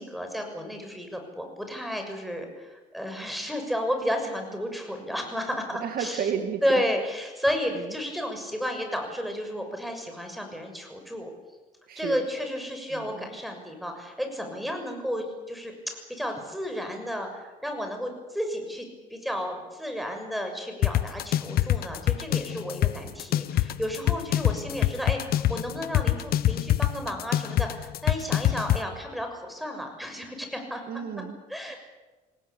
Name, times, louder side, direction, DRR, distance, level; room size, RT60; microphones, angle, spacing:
voice 1, 0.0-6.3 6.6-11.3 11.9-30.8 31.5-31.8, equal, ahead, 4 dB, 6.6 m, -32 dB
voice 2, 5.8-6.8 7.7-7.9 11.9-12.3 12.9-13.3 30.9-31.3 31.7-31.8, right 7 dB, 65° right, 7 dB, 2.4 m, -32 dB
sound 1, 20.8-28.8, left 12 dB, 65° left, 1.2 m, -24 dB
27.0 x 18.5 x 8.7 m, 1.2 s
cardioid pair, 110°, 17 cm